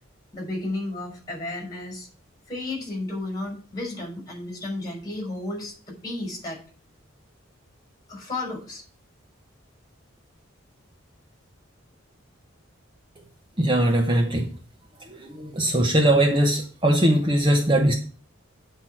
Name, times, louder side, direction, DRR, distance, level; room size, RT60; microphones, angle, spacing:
voice 1, 0.3-2.1 2.5-6.6 8.1-8.8, left 2 dB, 20° left, 0 dB, 5.3 m, -33 dB
voice 2, 13.6-14.5 15.2-17.9, right 1 dB, 25° right, 2 dB, 0.8 m, -20 dB
9.1 x 4.8 x 7.4 m, 0.40 s
head